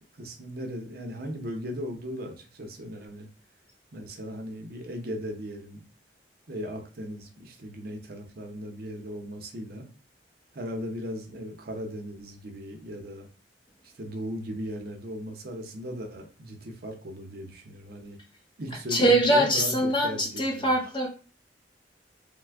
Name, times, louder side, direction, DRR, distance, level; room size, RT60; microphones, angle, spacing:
voice 1, 0.2-3.3 3.9-5.8 6.5-9.9 10.5-13.3 13.9-18.2 18.6-20.7, equal, 60° right, 4 dB, 0.7 m, -37 dB
voice 2, 18.9-21.1, right 1 dB, 25° left, -1 dB, 0.8 m, -23 dB
3.2 x 2.1 x 3.4 m, 0.36 s
head